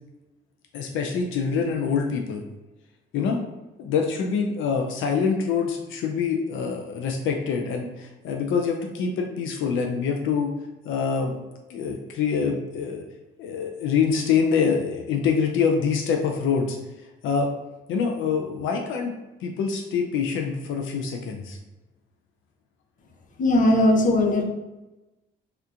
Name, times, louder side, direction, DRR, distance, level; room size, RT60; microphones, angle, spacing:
voice 1, 0.7-2.4 3.1-3.4 3.8-10.5 10.8-11.3 11.7-13.0 13.4-16.8 17.2-17.5 17.9-19.1 19.4-21.6, left 6 dB, 80° left, 2 dB, 0.4 m, -25 dB
voice 2, 23.4-24.4, left 1 dB, 40° left, 1 dB, 0.6 m, -19 dB
3.4 x 2.8 x 2.4 m, 1.1 s
cardioid pair, 90°, 20 cm